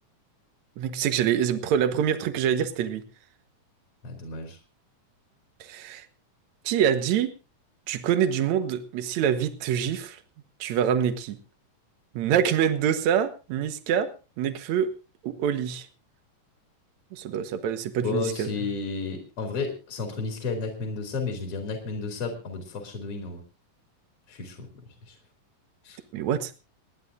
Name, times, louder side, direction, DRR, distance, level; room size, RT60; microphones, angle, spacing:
voice 1, 0.8-3.1 5.6-6.1 6.6-7.3 7.9-10.2 10.6-11.4 12.1-14.1 14.4-14.9 15.2-15.9 17.1-18.7 26.1-26.5, right 9 dB, 65° right, 10 dB, 2.4 m, -25 dB
voice 2, 4.0-4.6 18.0-23.4 24.3-24.7 25.1-25.2 25.8-26.0, left 4 dB, 45° left, 4 dB, 3.6 m, -32 dB
30.0 x 10.5 x 2.6 m, 0.31 s
omnidirectional pair, 3.7 m